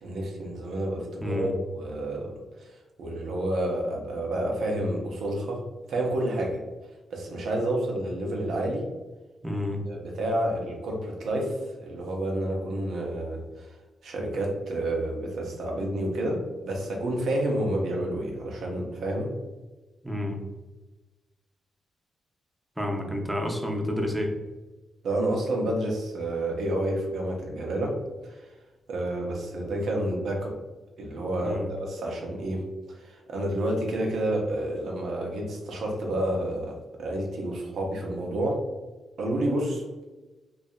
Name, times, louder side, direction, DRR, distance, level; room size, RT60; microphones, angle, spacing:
voice 1, 0.0-2.3 2.6-2.7 3.0-6.6 7.1-8.9 9.9-13.8 14.0-19.3 25.0-28.5 28.9-30.6 31.0-32.7 32.9-38.6 39.2-40.0, right 1 dB, 75° right, 0 dB, 0.6 m, -29 dB
voice 2, 1.2-1.5 9.4-9.8 20.0-20.4 22.8-24.3 31.4-31.8, left 1 dB, 10° right, 1 dB, 0.6 m, -30 dB
2.7 x 2.3 x 2.2 m, 1.2 s
supercardioid pair, 55°, 0 cm